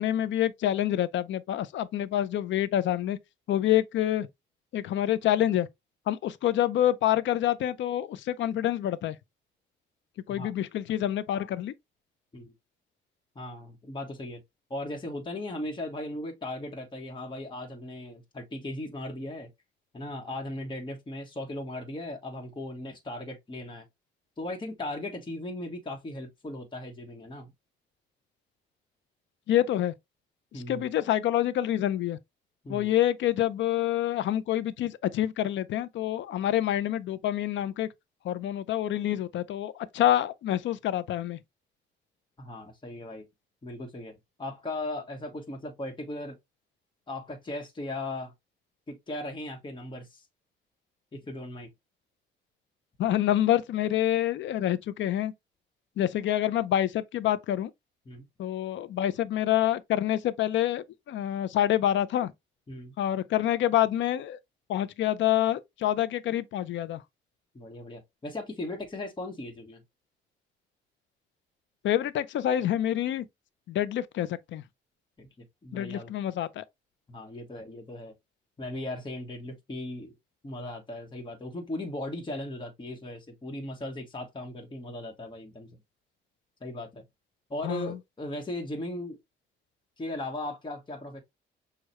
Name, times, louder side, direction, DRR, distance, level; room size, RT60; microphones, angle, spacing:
voice 1, 0.0-3.2 3.5-4.3 4.7-5.7 6.1-9.2 10.3-11.7 29.5-29.9 30.5-32.2 32.7-37.9 38.2-41.4 53.0-55.3 56.0-57.7 58.4-62.3 63.0-64.4 64.7-67.0 71.8-73.2 73.7-74.6 75.7-76.6 87.6-88.0, left 12 dB, 70° left, 0.5 m, -27 dB
voice 2, 13.3-14.4 14.7-19.5 19.9-23.8 24.4-27.5 30.5-30.9 32.6-32.9 42.4-43.2 43.6-44.1 44.4-46.4 47.1-48.3 48.9-50.3 51.1-51.7 58.1-58.3 62.7-62.9 67.5-69.8 75.2-76.1 77.1-78.1 78.6-80.1 80.4-85.7 86.6-87.0 87.5-89.2 90.0-91.2, left 1 dB, 25° left, 1.2 m, -37 dB
6.4 x 2.3 x 3.0 m
cardioid pair, 90°, 20 cm